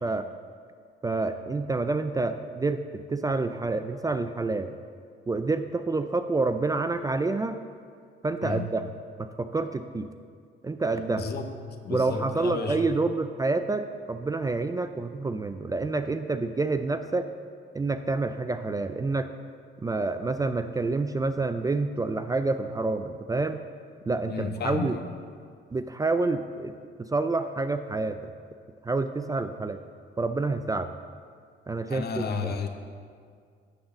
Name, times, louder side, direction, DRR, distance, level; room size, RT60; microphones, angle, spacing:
voice 1, 1.0-4.7 5.3-7.6 8.2-8.8 9.2-10.1 10.6-11.3 11.9-17.3 17.7-19.3 19.8-23.6 24.1-25.0 25.7-26.7 27.0-28.2 28.8-29.8 30.2-30.9 31.7-32.6, right 3 dB, 20° right, 9 dB, 0.3 m, -28 dB
voice 2, 11.2-11.5 11.8-12.9 24.3-25.1 31.9-32.7, left 5 dB, 55° left, 7 dB, 0.8 m, -32 dB
10.0 x 4.0 x 7.1 m, 2.1 s
cardioid pair, 90°, 20 cm